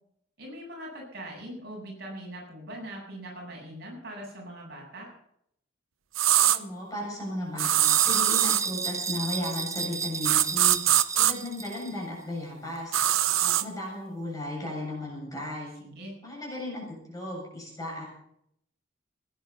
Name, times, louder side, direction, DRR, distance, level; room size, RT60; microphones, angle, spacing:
voice 1, 0.4-5.1 15.8-16.2, right 1 dB, 50° right, -2 dB, 8.0 m, -41 dB
sound 1, 6.2-6.6 7.6-8.7 10.2-11.3 12.9-13.6, right 12 dB, 85° right, 0.9 m, -22 dB
voice 2, 6.4-10.8 11.1-13.0 13.4-15.7 16.2-18.0, left 1 dB, 15° left, -3 dB, 7.5 m, -35 dB
sound 2, 7.8-12.0, right 5 dB, 15° right, 1.0 m, -33 dB
18.5 x 10.5 x 6.9 m, 0.72 s
head